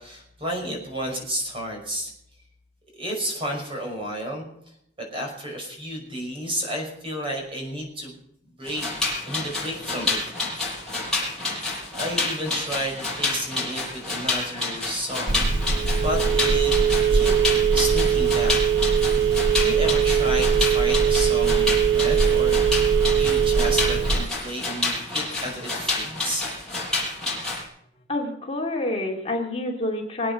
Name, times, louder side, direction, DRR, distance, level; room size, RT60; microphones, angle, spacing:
voice 1, 0.0-2.1 2.9-4.5 5.0-8.1 8.6-8.9 9.3-10.2 11.9-16.8 17.1-17.3 17.7-18.5 19.1-26.4, equal, 30° right, 1 dB, 5.6 m, -32 dB
sound 1, 8.6-27.6, left 3 dB, 5° left, 6.2 m, -29 dB
Telephone, 15.3-24.3, right 7 dB, 85° right, 0.7 m, -21 dB
voice 2, 28.1-30.3, left 1 dB, 35° left, 0 dB, 2.4 m, -27 dB
22.5 x 8.9 x 6.9 m, 0.75 s
head